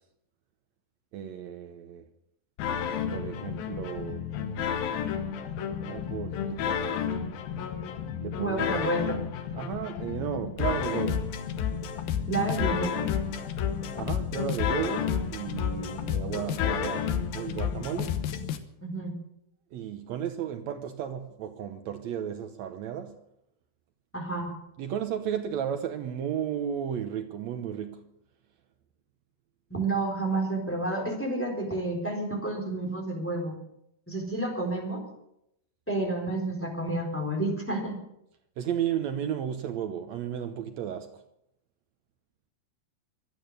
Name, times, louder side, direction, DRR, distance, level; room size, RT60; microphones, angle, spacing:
voice 1, 1.1-2.1 3.1-4.2 5.9-7.0 8.2-8.9 9.5-11.3 14.0-18.2 19.7-23.2 24.8-28.1 38.6-41.2, right 9 dB, 90° right, 1.5 m, -34 dB
sound 1, 2.6-18.6, left 8 dB, 75° left, 2.8 m, -31 dB
voice 2, 8.4-9.2 12.3-13.0 18.8-19.1 24.1-24.5 29.7-33.6 34.1-35.1 35.9-38.0, right 2 dB, 5° left, 3.4 m, -30 dB
24.5 x 9.0 x 6.6 m
omnidirectional pair, 4.4 m